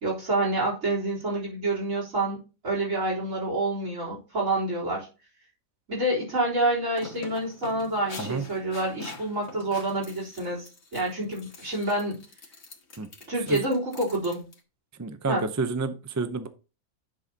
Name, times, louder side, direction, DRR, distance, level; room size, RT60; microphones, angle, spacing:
voice 1, 0.0-2.4 2.6-5.1 5.9-12.2 13.3-14.4 15.3-15.5, right 2 dB, 70° right, -2 dB, 4.2 m, -28 dB
sound 1, 6.7-14.6, left 3 dB, 75° left, 2.1 m, -44 dB
voice 2, 15.0-16.5, right 4 dB, 20° right, 9 dB, 0.4 m, -29 dB
11.0 x 6.4 x 2.8 m, 0.33 s
omnidirectional pair, 1.4 m